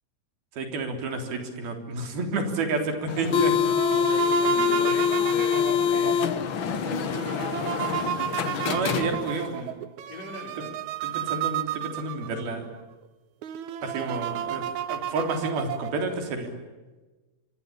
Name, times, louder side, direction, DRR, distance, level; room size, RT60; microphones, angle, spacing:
voice 1, 0.6-3.5 4.6-4.8 8.6-9.8 10.6-10.7 11.0-12.7 13.8-14.6 14.9-16.6, right 3 dB, 85° right, 5 dB, 5.4 m, -30 dB
sound 1, 3.1-9.5, left 8 dB, 80° left, 1.1 m, -25 dB
sound 2, 3.3-12.5 13.0-13.1 13.4-16.1, right 11 dB, 65° right, 2.1 m, -32 dB
voice 2, 4.2-9.2 10.1-10.8, left 2 dB, 60° left, 1 dB, 7.6 m, -40 dB
26.0 x 25.0 x 8.8 m, 1.2 s
omnidirectional pair, 4.2 m